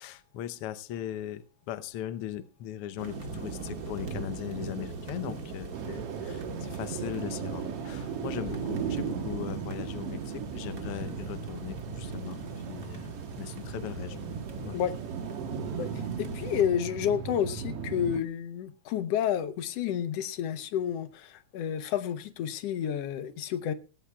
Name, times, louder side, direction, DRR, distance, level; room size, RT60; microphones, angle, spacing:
voice 1, 0.0-14.2 14.6-14.8 16.3-16.4, left 11 dB, 90° left, 1.2 m, -39 dB
sound 1, 3.0-16.6, right 3 dB, 35° right, 1.6 m, -40 dB
sound 2, 5.7-18.2, right 6 dB, 60° right, 1.9 m, -37 dB
voice 2, 15.8-23.7, left 9 dB, 70° left, 1.6 m, -30 dB
17.5 x 16.0 x 2.3 m
omnidirectional pair, 3.5 m